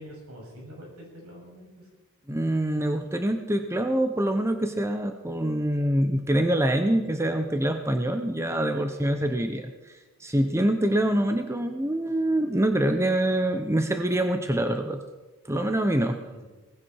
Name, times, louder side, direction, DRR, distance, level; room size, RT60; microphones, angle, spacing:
voice 1, 0.0-1.9 16.2-16.5, equal, 85° right, -2 dB, 7.4 m, -46 dB
voice 2, 2.3-15.0 15.5-16.2, right 1 dB, 15° right, 6 dB, 0.8 m, -25 dB
19.0 x 16.0 x 4.7 m, 1.2 s
head